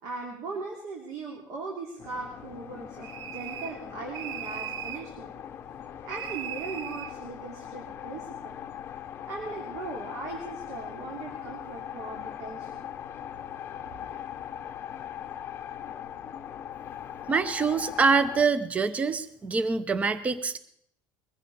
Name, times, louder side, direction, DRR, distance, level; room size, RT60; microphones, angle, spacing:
voice 1, 0.0-5.3 6.0-8.5 9.2-12.9, right 4 dB, 55° right, 0 dB, 2.7 m, -39 dB
sound 1, 2.0-18.4, left 9 dB, 35° left, 0.7 m, -40 dB
sound 2, 3.0-3.8 4.1-5.1 6.1-7.1, right 11 dB, 75° right, 0.5 m, -38 dB
voice 2, 17.3-20.6, right 4 dB, 20° right, 14 dB, 0.7 m, -25 dB
21.0 x 15.5 x 4.1 m, 0.70 s
cardioid pair, 150°, 7 cm